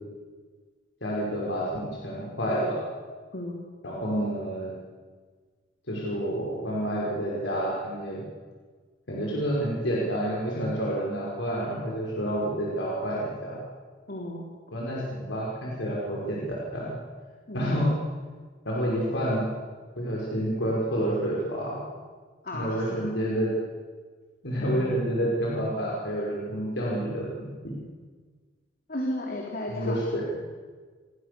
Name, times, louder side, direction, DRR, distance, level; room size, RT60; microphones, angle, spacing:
voice 1, 1.0-2.8 3.8-4.7 5.9-8.2 9.1-13.6 14.7-16.9 17.5-17.9 18.6-19.4 20.0-21.8 22.5-23.5 24.4-27.8 29.7-30.2, equal, 75° left, -4 dB, 6.0 m, -29 dB
voice 2, 14.1-14.5 17.5-17.8 22.4-23.1 24.6-25.0 28.9-30.0, left 1 dB, 50° left, 0 dB, 3.7 m, -34 dB
28.5 x 22.5 x 7.1 m, 1.5 s
head